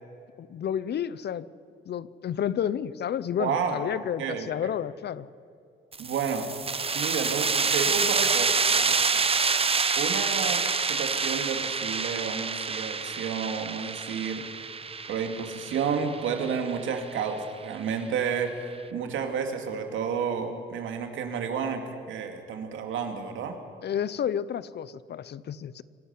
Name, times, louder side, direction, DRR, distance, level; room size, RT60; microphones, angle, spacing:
voice 1, 0.4-1.5 1.9-5.3 23.8-25.8, left 9 dB, 60° left, 18 dB, 0.7 m, -31 dB
voice 2, 3.4-3.9 4.2-4.5 6.0-6.5 6.9-9.3 10.0-14.5 15.1-23.6, right 6 dB, 80° right, 5 dB, 2.6 m, -31 dB
sound 1, 5.9-17.3, right 5 dB, 30° right, 1.1 m, -27 dB
25.5 x 11.5 x 9.7 m, 2.4 s
cardioid pair, 90°, 20 cm